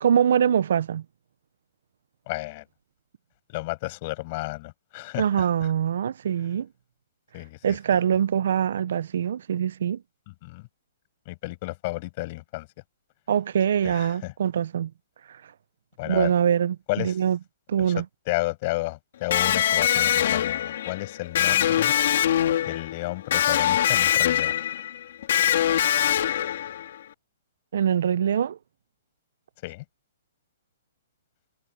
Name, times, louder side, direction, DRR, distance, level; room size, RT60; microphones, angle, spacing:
voice 1, 0.0-1.0 5.2-6.7 7.6-10.0 13.3-14.9 15.3-15.4 16.0-17.4 17.7-18.0 27.7-28.6, right 8 dB, 55° right, 0.6 m, -23 dB
voice 2, 2.3-2.6 3.5-5.7 7.3-7.8 10.4-10.7 11.2-12.7 13.8-14.3 16.0-16.3 16.9-17.1 18.0-21.9 22.6-24.6 29.6-29.8, left 22 dB, 30° left, 6.5 m, -32 dB
Electric guitar, 19.3-27.0, left 11 dB, 50° left, 2.7 m, -23 dB
hypercardioid pair, 175°, 0 cm